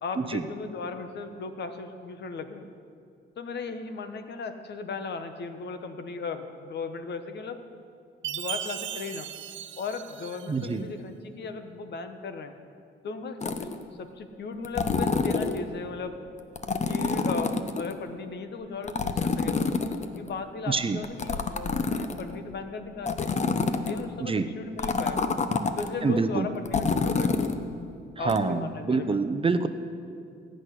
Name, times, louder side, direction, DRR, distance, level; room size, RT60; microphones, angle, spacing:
voice 1, 0.0-2.6 3.4-7.6 8.2-9.3 9.7-12.5 13.0-13.7 14.0-16.2 16.9-19.7 20.2-23.3 23.8-25.3 25.8-27.4 28.2-29.2, left 4 dB, 60° left, 8 dB, 1.3 m, -36 dB
Chime, 8.2-10.7, right 10 dB, 70° right, 0.7 m, -37 dB
voice 2, 10.5-10.9 20.7-21.0 24.2-24.5 26.0-26.5 28.2-29.7, right 4 dB, 25° right, 10 dB, 0.7 m, -26 dB
sound 1, 13.4-13.8 14.6-15.6 16.6-17.9 18.9-20.3 21.0-22.4 23.0-24.0 24.8-25.9 26.7-27.6 28.3-28.4, left 4 dB, 35° left, 0.9 m, -27 dB
16.5 x 6.3 x 10.0 m, 2.3 s
cardioid pair, 90°, 20 cm